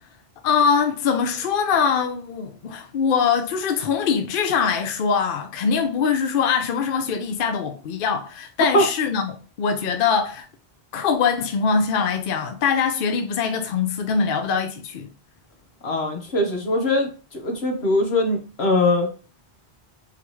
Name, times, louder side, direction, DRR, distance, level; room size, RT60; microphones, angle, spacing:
voice 1, 0.4-10.5 10.9-15.1, left 6 dB, 60° left, 0.8 m, -23 dB
voice 2, 15.8-19.1, left 1 dB, 90° left, 1.4 m, -21 dB
4.8 x 3.5 x 3.0 m
omnidirectional pair, 1.0 m